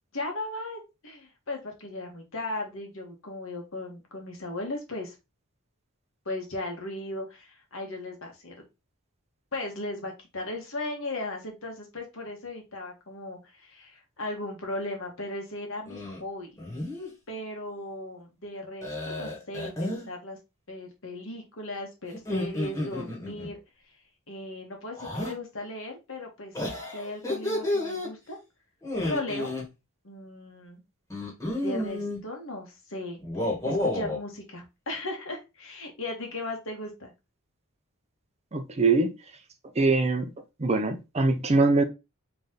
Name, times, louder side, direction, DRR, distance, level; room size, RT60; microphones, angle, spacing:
voice 1, 0.1-5.1 6.2-8.5 9.5-16.5 17.3-20.4 20.7-23.6 24.3-26.7 26.9-28.4 29.0-29.5 30.0-30.8 31.6-37.1, left 2 dB, 60° left, 1.5 m, -37 dB
sound 1, 15.9-16.2 16.6-17.1 18.8-20.1 22.1-23.5 25.0-25.3 26.5-28.1 28.8-29.6 31.1-32.2 33.2-34.2, left 1 dB, 15° left, 1.5 m, -31 dB
voice 2, 38.5-39.1 39.8-40.3 40.6-41.8, right 3 dB, 30° right, 0.6 m, -23 dB
4.0 x 3.4 x 3.7 m
head